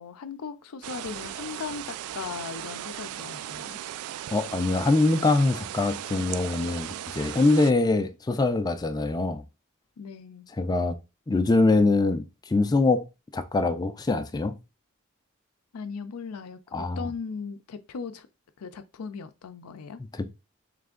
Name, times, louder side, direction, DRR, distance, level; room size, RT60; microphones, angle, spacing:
voice 1, 0.0-3.8 10.0-10.5 15.7-18.3 18.6-20.0, left 5 dB, 90° left, 0.5 m, -38 dB
sound 1, 0.8-7.7, right 12 dB, 85° right, 0.3 m, -37 dB
voice 2, 4.3-9.4 10.6-11.0 11.3-13.1 13.3-14.6 16.7-17.1 20.1-20.3, left 3 dB, 20° left, 0.3 m, -23 dB
3.4 x 3.3 x 3.7 m
head